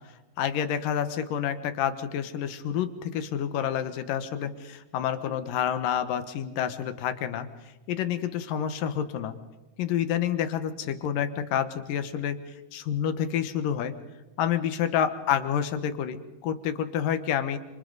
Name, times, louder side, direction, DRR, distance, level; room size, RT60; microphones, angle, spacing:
voice 1, 0.4-7.5 7.9-9.4 9.8-12.4 12.7-13.9 14.4-17.6, left 9 dB, 70° left, 10 dB, 2.7 m, -28 dB
29.5 x 27.0 x 4.0 m, 1.1 s
omnidirectional pair, 4.3 m